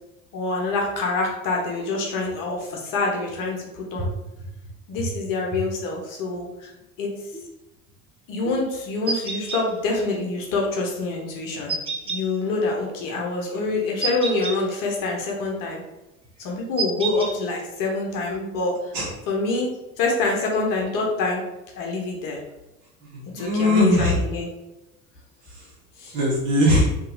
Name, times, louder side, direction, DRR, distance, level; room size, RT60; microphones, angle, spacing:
voice 1, 0.3-4.1 4.9-6.7 7.0-7.1 8.3-11.8 12.0-15.8 16.4-18.9 19.3-21.4 21.8-22.4 23.3-24.5 26.0-26.1, left 3 dB, 50° left, -1 dB, 0.9 m, -26 dB
sound 1, 9.1-9.6 11.7-12.2 14.0-14.6 16.8-17.3, right 4 dB, 15° right, 0.4 m, -27 dB
voice 2, 23.0-24.2 26.1-26.9, left 1 dB, 55° right, -4 dB, 1.3 m, -20 dB
2.9 x 2.7 x 2.6 m, 0.98 s
figure-of-eight pair, 65°, 43 cm